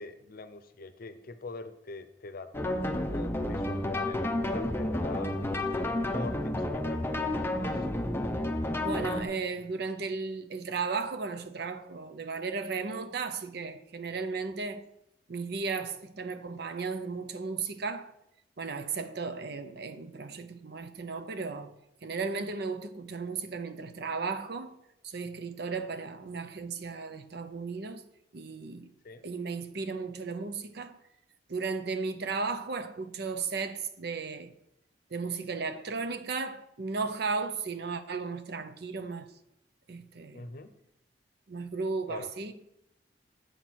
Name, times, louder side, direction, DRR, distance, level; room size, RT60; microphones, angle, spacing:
voice 1, 0.0-5.3 5.8-7.9 29.0-29.3 40.3-40.7 42.1-42.3, left 3 dB, 55° left, 0.6 m, -44 dB
sound 1, 2.5-9.2, left 1 dB, 15° left, 0.6 m, -31 dB
voice 2, 8.8-14.8 15.3-18.1 18.6-21.7 22.0-24.8 25.0-28.0 28.3-28.9 29.2-31.0 31.5-34.5 35.1-39.3 39.9-40.4 41.5-42.5, right 4 dB, 65° right, 0.7 m, -35 dB
8.2 x 5.9 x 4.6 m
head